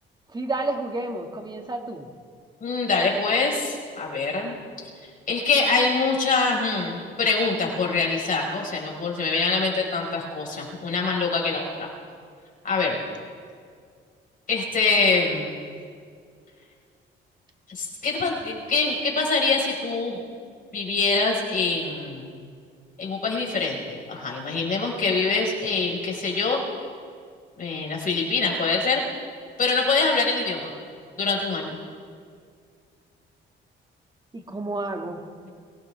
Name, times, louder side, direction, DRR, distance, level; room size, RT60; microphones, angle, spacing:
voice 1, 0.3-2.1 34.3-35.2, right 2 dB, 20° right, 3 dB, 2.0 m, -30 dB
voice 2, 2.6-4.5 4.8-4.9 5.3-11.9 12.6-13.0 14.5-15.5 17.7-20.2 20.7-22.3 23.0-26.6 27.6-29.0 29.6-30.7 31.2-31.8, left 4 dB, 45° left, -1 dB, 4.8 m, -24 dB
24.0 x 17.5 x 3.4 m, 2.2 s
cardioid pair, 90°, 20 cm